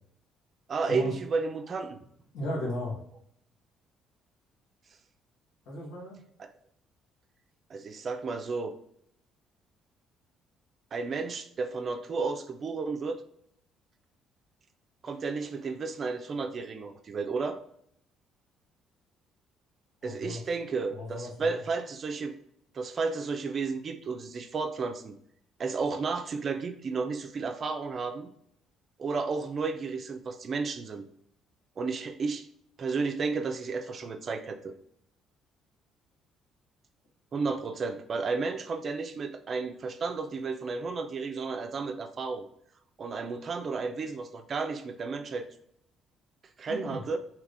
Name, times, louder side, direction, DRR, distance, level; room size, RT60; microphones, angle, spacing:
voice 1, 0.7-2.0 6.4-6.5 7.7-8.7 10.9-13.2 15.0-17.6 20.0-22.4 22.7-25.2 25.6-28.3 29.0-31.1 31.8-32.4 32.8-34.7 37.3-42.4 43.0-45.5 46.6-47.2, right 4 dB, 45° right, 7 dB, 0.4 m, -32 dB
voice 2, 2.3-3.0 5.7-6.2 20.0-20.4 20.9-21.6 46.7-47.0, left 1 dB, 80° left, -3 dB, 1.3 m, -35 dB
3.3 x 2.8 x 2.5 m, 0.69 s
supercardioid pair, 70°, 0 cm